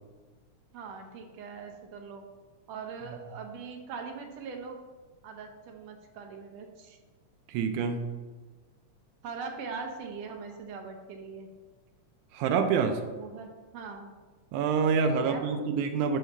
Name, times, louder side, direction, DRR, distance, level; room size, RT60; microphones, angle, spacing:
voice 1, 0.7-2.2 2.7-4.8 5.2-7.0 9.2-11.5 13.1-14.2 15.2-15.6, right 5 dB, 70° right, 3 dB, 2.0 m, -41 dB
voice 2, 7.5-8.1 12.3-13.0 14.5-16.2, right 5 dB, 85° right, 6 dB, 2.1 m, -27 dB
6.3 x 5.4 x 6.8 m, 1.4 s
omnidirectional pair, 3.4 m